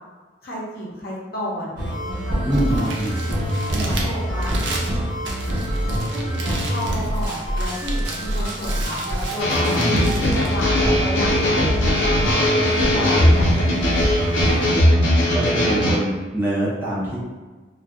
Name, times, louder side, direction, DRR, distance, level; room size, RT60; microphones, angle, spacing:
voice 1, 0.4-2.9 3.3-3.4 3.7-4.5 6.1-14.8, equal, 55° left, -5 dB, 0.7 m, -32 dB
sound 1, 1.8-14.7, equal, 45° right, 1.0 m, -25 dB
voice 2, 2.4-3.2 3.7-4.0 9.7-10.1 10.8-11.0 14.6-17.2, right 1 dB, 10° right, -8 dB, 0.5 m, -25 dB
Crumpling crinkling, 2.4-11.5, right 3 dB, 65° right, 0.5 m, -35 dB
sound 2, 9.4-16.0, left 1 dB, 90° left, 0.6 m, -19 dB
2.5 x 2.2 x 2.4 m, 1.3 s
head